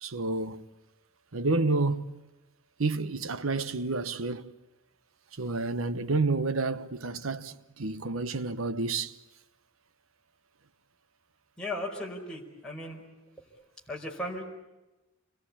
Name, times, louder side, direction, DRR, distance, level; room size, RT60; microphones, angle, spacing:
voice 1, 0.0-0.7 1.3-2.2 2.8-4.5 5.4-9.1, right 3 dB, 80° right, 1.0 m, -29 dB
voice 2, 11.6-13.0 13.9-14.4, left 1 dB, 5° left, 5.0 m, -36 dB
28.5 x 22.0 x 8.6 m
head